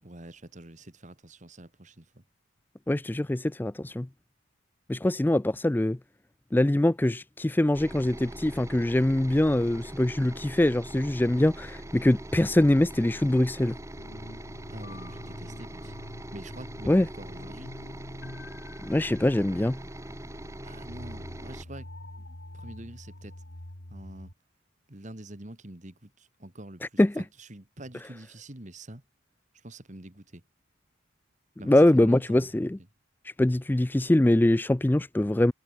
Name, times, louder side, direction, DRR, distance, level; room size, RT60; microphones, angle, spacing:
voice 1, 0.0-2.2 14.7-16.0 16.3-17.7 20.6-21.9 22.5-23.3 23.9-24.3 24.9-29.0 29.5-30.4 31.6-32.5, right 1 dB, 35° right, 2.1 m, -45 dB
voice 2, 2.9-4.1 4.9-6.0 6.5-13.8 16.9-17.1 18.8-19.8 27.0-27.1 31.7-32.8 33.2-35.5, left 1 dB, 10° left, 0.3 m, -23 dB
sound 1, 7.7-21.6, right 1 dB, 15° right, 1.8 m, -42 dB
sound 2, 14.0-24.3, left 1 dB, 55° left, 2.7 m, -46 dB
head